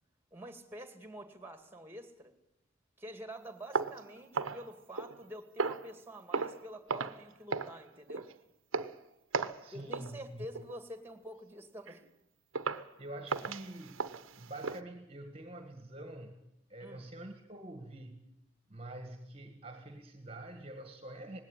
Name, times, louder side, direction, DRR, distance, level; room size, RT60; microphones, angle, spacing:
voice 1, 0.3-2.3 3.0-8.3 9.7-12.0 16.8-17.0, equal, 10° right, 8 dB, 2.3 m, -47 dB
sound 1, 3.7-5.2 5.6-5.9 6.3-6.6 6.9-7.2 7.5-7.8 8.1-8.3 8.7-9.0 9.3-9.6 9.9-10.1 10.5-10.8 11.3-11.4 11.9-12.0 12.5-12.9 13.3-14.8, right 4 dB, 85° right, 1.0 m, -36 dB
voice 2, 9.6-10.5 13.0-14.1 14.4-16.4 16.7-18.3 18.7-21.4, right 1 dB, 30° right, 6 dB, 1.7 m, -46 dB
20.0 x 17.0 x 9.2 m, 0.89 s
head